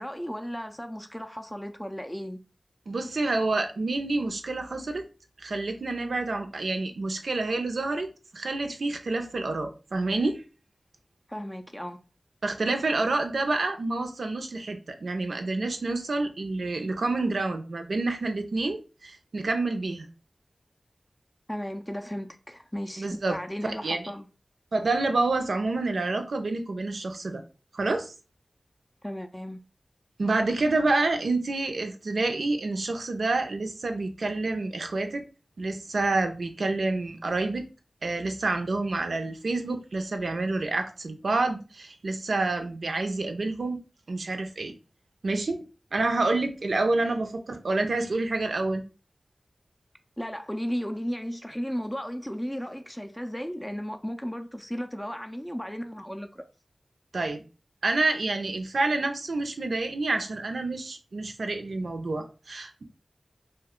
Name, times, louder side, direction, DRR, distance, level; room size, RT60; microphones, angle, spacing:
voice 1, 0.0-2.4 11.3-12.0 21.5-24.3 29.0-29.6 50.2-56.4, equal, 5° left, 0.3 m, -35 dB
voice 2, 2.9-5.0 5.4-10.4 12.4-20.1 23.0-23.4 23.6-24.1 24.7-27.4 27.7-28.1 30.2-35.2 35.6-37.7 38.0-43.8 44.1-44.7 45.2-45.6 45.9-48.8 57.1-57.4 57.8-62.8, right 2 dB, 85° right, 0.5 m, -28 dB
2.7 x 2.2 x 3.5 m
wide cardioid pair, 50°, 0 cm